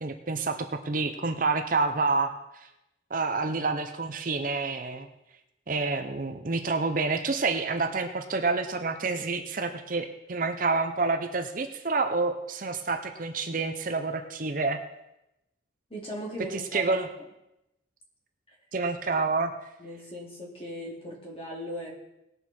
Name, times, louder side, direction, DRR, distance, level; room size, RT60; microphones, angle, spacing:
voice 1, 0.0-2.4 3.1-5.1 5.7-14.8 16.7-17.1 18.7-19.5, right 3 dB, 45° right, 6 dB, 0.7 m, -28 dB
voice 2, 15.9-17.0 18.5-18.6 19.8-21.9, equal, 30° left, -3 dB, 2.8 m, -38 dB
19.0 x 6.8 x 4.3 m, 0.89 s
head